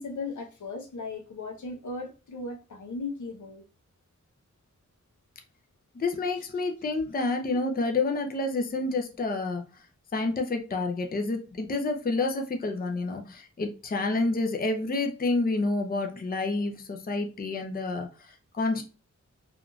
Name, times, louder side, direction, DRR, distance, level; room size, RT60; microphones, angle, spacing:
voice 1, 0.0-3.6, left 3 dB, 80° left, 0.8 m, -37 dB
voice 2, 5.9-9.6 10.1-18.8, left 3 dB, 30° left, 0.5 m, -29 dB
3.5 x 2.5 x 2.3 m
wide cardioid pair, 80°, 29 cm